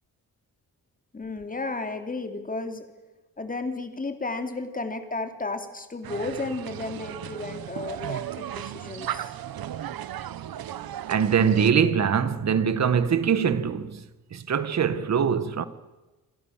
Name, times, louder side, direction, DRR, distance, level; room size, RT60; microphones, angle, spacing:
voice 1, 1.1-2.9 3.4-9.3, left 3 dB, 20° left, 3.1 m, -33 dB
sound 1, 6.0-11.7, right 11 dB, 75° right, 1.2 m, -35 dB
voice 2, 11.1-14.0 14.3-15.7, right 7 dB, 45° right, 1.7 m, -23 dB
28.5 x 27.0 x 7.4 m
wide cardioid pair, 145°, 36 cm